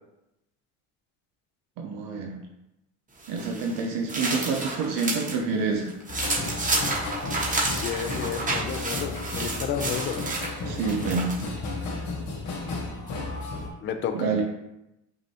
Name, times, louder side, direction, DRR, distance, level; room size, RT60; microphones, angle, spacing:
voice 1, 1.8-2.4 3.3-5.9 10.7-11.3 14.1-14.4, right 4 dB, 60° right, 2 dB, 0.7 m, -27 dB
sound 1, 3.2-5.4 5.7-11.5, right 2 dB, 20° right, 1.2 m, -30 dB
sound 2, 6.1-13.7, left 3 dB, 50° left, 1.0 m, -33 dB
voice 2, 7.8-10.2 13.8-14.3, left 8 dB, 30° left, 7 dB, 0.4 m, -31 dB
5.1 x 2.7 x 2.7 m, 0.89 s
hypercardioid pair, 70°, 39 cm